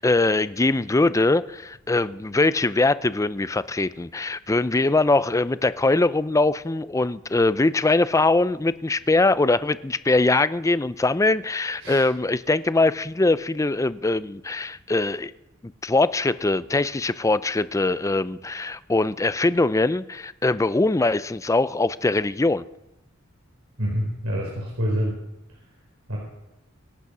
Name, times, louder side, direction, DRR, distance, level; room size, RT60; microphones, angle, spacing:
voice 1, 0.0-15.3 15.6-22.6, left 2 dB, 15° left, 0.4 m, -22 dB
voice 2, 23.8-25.2 26.1-26.2, equal, 90° right, 4.5 m, -26 dB
24.0 x 8.3 x 6.1 m
head